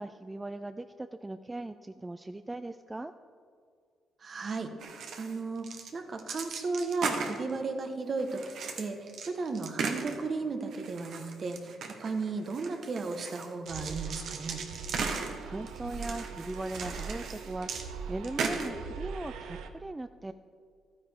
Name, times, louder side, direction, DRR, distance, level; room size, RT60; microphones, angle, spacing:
voice 1, 0.0-3.1 15.1-20.3, right 2 dB, 15° right, 10 dB, 0.3 m, -39 dB
voice 2, 4.2-4.7 5.2-14.6, right 4 dB, 45° right, 6 dB, 1.0 m, -35 dB
sound 1, 4.8-5.4 5.6-5.9 6.2-7.6 8.2-10.4 10.7-17.8 18.2-18.7, right 5 dB, 70° right, 1.1 m, -37 dB
sound 2, 13.7-19.7, right 5 dB, 85° right, 0.7 m, -41 dB
12.5 x 9.4 x 3.5 m, 2.2 s
cardioid pair, 90°, 0 cm